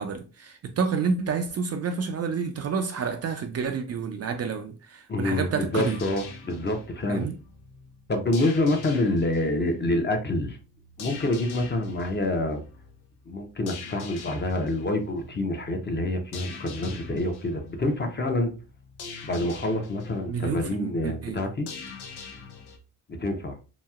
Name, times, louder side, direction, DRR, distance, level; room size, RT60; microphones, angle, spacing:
voice 1, 0.0-6.0 7.1-7.4 20.3-21.4, right 5 dB, 40° right, 0.4 m, -29 dB
voice 2, 5.1-7.3 8.1-10.6 11.0-12.6 13.3-18.5 19.2-21.7 23.1-23.6, left 2 dB, 25° left, 0.7 m, -27 dB
sound 1, 5.7-22.8, left 4 dB, 85° left, 0.7 m, -44 dB
2.9 x 2.6 x 2.3 m
supercardioid pair, 65°, 39 cm